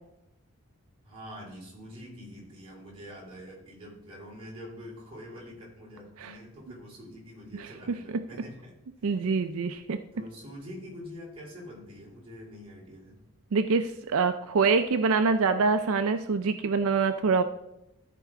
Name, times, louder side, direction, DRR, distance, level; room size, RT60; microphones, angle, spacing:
voice 1, 1.0-9.2 10.1-13.2, equal, 25° right, -5 dB, 3.3 m, -45 dB
voice 2, 7.6-8.2 9.0-10.0 13.5-17.4, right 4 dB, 75° right, 8 dB, 0.4 m, -25 dB
13.5 x 4.7 x 3.7 m, 0.87 s
head